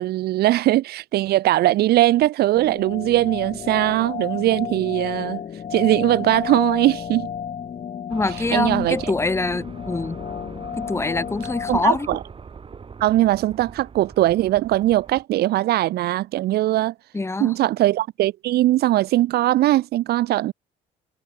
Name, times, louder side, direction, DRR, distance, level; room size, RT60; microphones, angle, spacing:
voice 1, 0.0-5.4 5.7-7.3 8.5-9.1 11.7-12.2 13.0-16.9 17.4-20.5, right 15 dB, 70° right, 1.0 m, -20 dB
sound 1, 2.5-11.8, left 8 dB, 45° left, 1.9 m, -32 dB
voice 2, 8.1-10.2 10.8-12.1 17.1-17.5, left 3 dB, 15° left, 2.1 m, -24 dB
sound 2, 8.1-15.2, right 5 dB, 30° right, 4.7 m, -41 dB
cardioid pair, 110°, 17 cm